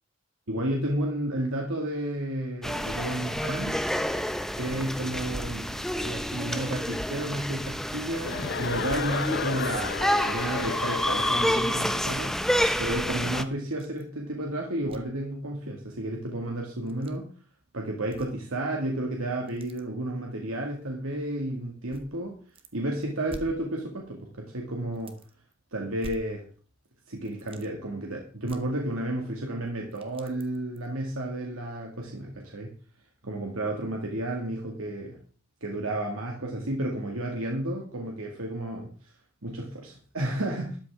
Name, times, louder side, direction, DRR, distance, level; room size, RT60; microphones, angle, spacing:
voice 1, 0.5-3.8 4.6-10.0 10.2-12.4 12.8-17.3 17.7-22.4 22.7-25.2 25.7-26.5 27.1-32.7 33.2-35.2 35.6-39.1 39.4-40.8, right 1 dB, 80° right, 0 dB, 2.2 m, -32 dB
sound 1, 2.6-13.4, equal, ahead, 0.6 m, -29 dB
Chuckle chortle, 8.2-12.0, left 5 dB, 50° left, 0.6 m, -33 dB
sound 2, 13.7-14.1 14.4-14.5 14.8-15.2 16.7-17.2 18.0-18.6 18.9-19.8 20.7-20.8 21.9-22.7 23.0-24.2 24.5-24.6 24.9-25.5 26.0-26.8 27.1-27.7 28.4-29.4 29.7-30.9 31.4-31.5 32.0-32.1, right 1 dB, 25° right, 1.2 m, -48 dB
13.0 x 12.0 x 3.7 m, 0.40 s
head